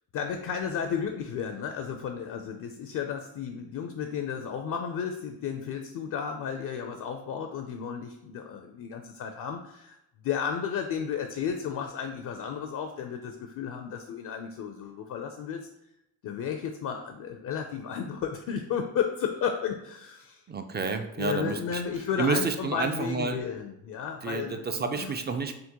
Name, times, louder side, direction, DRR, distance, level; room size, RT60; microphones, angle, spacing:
voice 1, 0.1-15.7 16.2-20.4 20.8-25.1, left 7 dB, 55° left, 5 dB, 0.5 m, -33 dB
voice 2, 20.5-21.8 22.2-23.4 24.2-25.6, right 4 dB, 25° right, 7 dB, 0.4 m, -30 dB
3.6 x 2.1 x 2.9 m, 0.84 s
supercardioid pair, 55°, 40 cm